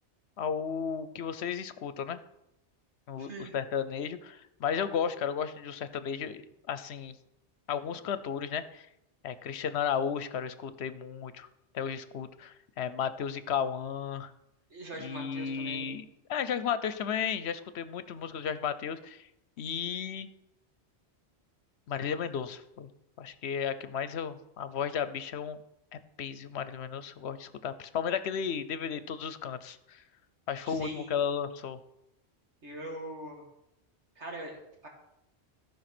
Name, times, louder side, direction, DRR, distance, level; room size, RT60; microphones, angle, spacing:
voice 1, 0.4-2.2 3.1-7.2 7.7-8.9 9.2-11.5 11.7-14.3 15.0-19.3 19.6-20.3 21.9-22.9 23.2-25.6 25.9-30.0 30.5-31.8, left 7 dB, 75° left, 13 dB, 0.9 m, -34 dB
voice 2, 3.2-3.5 14.7-15.8 23.8-23.9 30.6-31.2 32.6-33.4 34.2-34.9, right 1 dB, 80° right, 0 dB, 2.5 m, -42 dB
14.0 x 5.1 x 6.0 m, 0.86 s
omnidirectional pair, 1.1 m